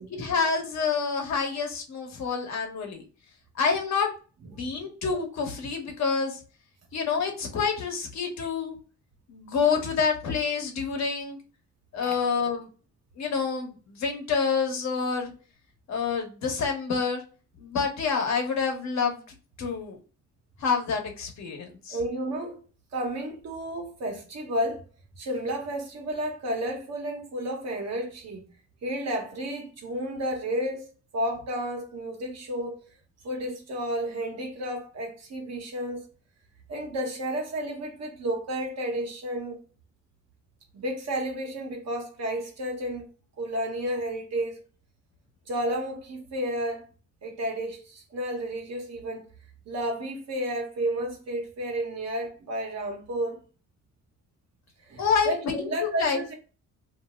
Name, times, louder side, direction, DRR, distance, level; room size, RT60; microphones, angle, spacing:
voice 1, 0.1-3.0 3.5-4.1 4.4-6.4 6.9-8.8 9.3-11.4 11.9-12.7 13.2-15.3 15.9-17.2 17.6-19.2 19.6-20.0 20.6-22.0 55.0-56.2, left 5 dB, 65° left, 1.1 m, -27 dB
voice 2, 21.9-22.6 22.9-24.8 25.2-28.5 28.8-32.9 33.2-36.1 36.7-39.6 40.7-43.1 43.4-44.6 45.5-46.8 47.2-49.3 49.7-53.4 54.8-56.3, right 1 dB, 60° right, 1.2 m, -32 dB
2.7 x 2.1 x 3.5 m
cardioid pair, 90°, 30 cm